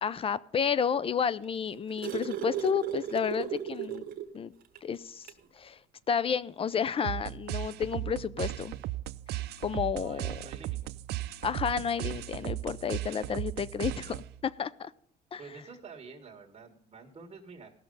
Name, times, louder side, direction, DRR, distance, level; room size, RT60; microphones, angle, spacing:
voice 1, 0.0-4.0 4.3-4.5 4.8-5.8 6.1-8.7 9.3-10.3 11.4-14.9 15.3-15.4, left 7 dB, 35° left, 0.5 m, -31 dB
sound 1, 1.4-4.4 4.8-4.9 5.2-5.5 6.6-6.7, right 10 dB, 60° right, 1.4 m, -35 dB
sound 2, 7.0-14.5, right 15 dB, 75° right, 0.5 m, -36 dB
voice 2, 9.9-10.8 15.4-17.7, right 4 dB, 35° right, 1.9 m, -48 dB
17.0 x 6.6 x 5.5 m
cardioid pair, 110°, 17 cm